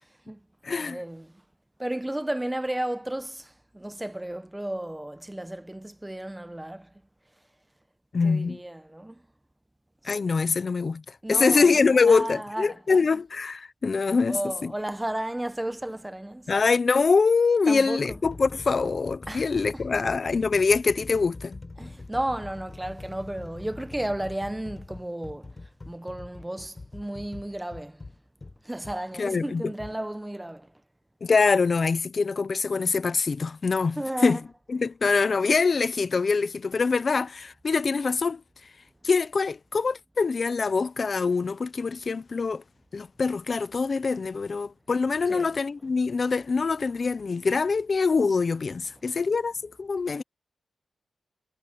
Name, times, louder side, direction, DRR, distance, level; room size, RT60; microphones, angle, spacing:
voice 1, 0.1-1.4 1.8-6.9 8.2-9.2 10.1-10.3 11.2-13.0 14.3-16.5 17.7-18.2 19.3-19.8 21.8-28.1 28.6-30.7 34.0-34.4 45.3-45.5, right 1 dB, 10° right, 1.1 m, -34 dB
voice 2, 0.6-1.0 8.1-8.6 10.0-14.7 16.5-21.6 29.2-29.6 31.2-34.4 34.7-38.4 39.0-42.6 42.9-50.2, left 4 dB, 50° left, 0.9 m, -24 dB
sound 1, 15.8-16.0 16.9-17.1 17.7-29.0 29.8-30.0, left 3 dB, 30° left, 6.7 m, -43 dB
cardioid pair, 80°, 0 cm